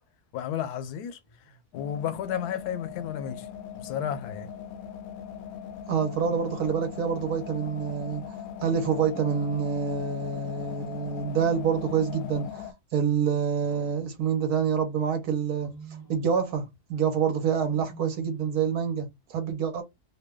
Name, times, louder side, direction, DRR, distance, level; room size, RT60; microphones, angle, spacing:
voice 1, 0.3-1.2 1.7-3.5 3.7-4.5, left 9 dB, 90° left, 1.1 m, -32 dB
Wild animals, 1.2-1.6 2.8-3.5 5.9-6.8 8.6-9.7 11.1-12.1 13.6-14.7 15.5-16.4 17.7-18.7, right 3 dB, 25° left, 0.5 m, -50 dB
sound 1, 1.7-12.7, left 8 dB, 70° left, 0.9 m, -40 dB
voice 2, 5.9-15.7 16.1-19.8, right 7 dB, 75° right, 1.2 m, -27 dB
2.8 x 2.2 x 3.4 m
omnidirectional pair, 1.6 m